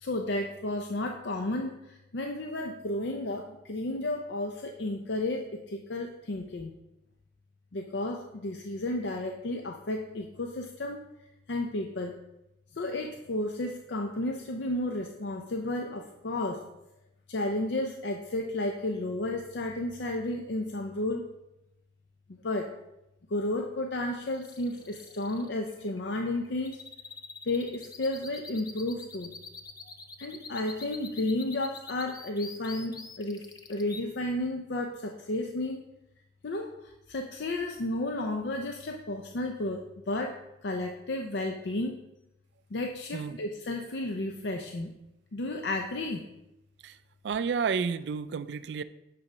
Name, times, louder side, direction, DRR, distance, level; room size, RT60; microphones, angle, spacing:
voice 1, 0.0-6.7 7.7-11.0 11.5-12.2 12.7-16.6 17.3-21.3 22.4-22.7 23.3-26.8 27.4-29.3 30.2-35.8 36.4-40.4 40.6-42.0 42.7-44.9 45.3-46.2, left 1 dB, 75° left, 3 dB, 0.6 m, -32 dB
sound 1, 24.3-34.0, left 4 dB, 20° left, 0.5 m, -46 dB
voice 2, 47.2-48.8, right 6 dB, 65° right, 14 dB, 0.3 m, -31 dB
8.8 x 3.9 x 5.5 m, 0.91 s
head